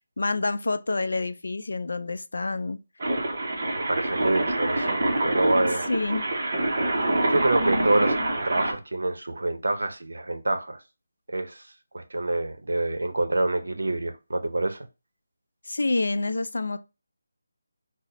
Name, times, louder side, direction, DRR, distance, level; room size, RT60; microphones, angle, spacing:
voice 1, 0.2-2.8 5.9-6.2 15.6-16.8, left 3 dB, 70° left, 0.4 m, -27 dB
sound 1, 3.0-8.7, right 2 dB, 30° right, 0.6 m, -26 dB
voice 2, 3.7-5.8 7.3-8.2 8.4-10.8 11.3-11.6 11.9-14.9, right 2 dB, 90° right, 0.6 m, -26 dB
4.0 x 2.0 x 2.9 m
figure-of-eight pair, 180°, 0 cm